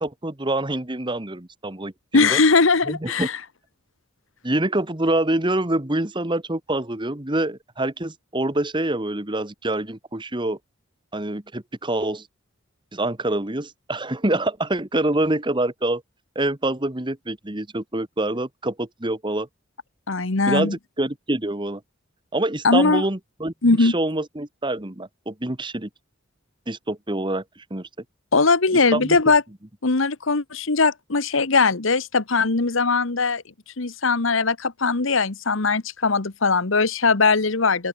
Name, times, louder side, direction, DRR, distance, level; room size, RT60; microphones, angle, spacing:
voice 1, 0.0-2.4 2.9-3.3 4.4-10.6 11.1-12.3 12.9-16.0 16.3-19.5 20.5-21.8 22.3-25.9 26.7-27.9 28.9-29.2, right 1 dB, 25° right, 1.5 m, -26 dB
voice 2, 2.1-3.3 20.1-20.7 22.6-23.0 23.6-23.9 28.3-29.4 29.8-33.4 33.8-37.9, left 4 dB, 70° left, 1.3 m, -20 dB
open air
head